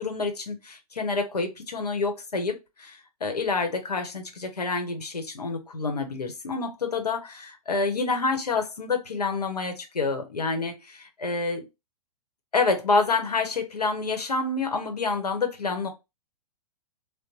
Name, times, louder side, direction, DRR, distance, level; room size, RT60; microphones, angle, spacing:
voice 1, 0.0-11.6 12.5-15.9, left 4 dB, 80° left, 0.9 m, -28 dB
3.8 x 2.1 x 2.9 m
figure-of-eight pair, 110°, 20 cm